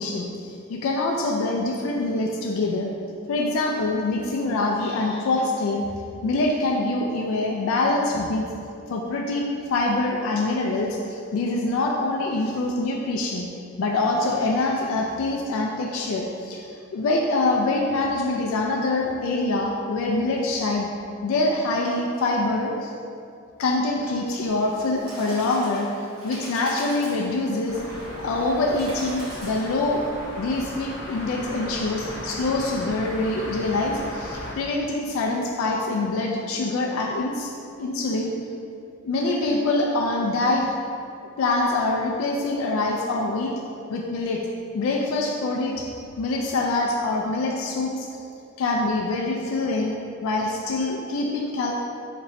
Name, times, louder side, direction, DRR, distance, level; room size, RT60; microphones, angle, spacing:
voice 1, 0.0-2.9 3.3-5.8 6.2-8.4 8.9-13.5 13.8-20.9 21.2-22.9 23.6-25.9 26.2-27.8 28.2-30.0 30.4-37.5 37.8-38.3 39.0-40.8 41.4-43.5 43.9-44.4 44.7-45.9 46.2-48.1 48.6-49.9 50.2-51.7, left 2 dB, 75° left, -1 dB, 0.3 m, -25 dB
Bird, 24.5-30.1, right 1 dB, 80° right, 1.2 m, -41 dB
sound 1, 27.7-34.5, equal, 60° left, 0.7 m, -36 dB
4.2 x 2.9 x 2.7 m, 2.5 s
head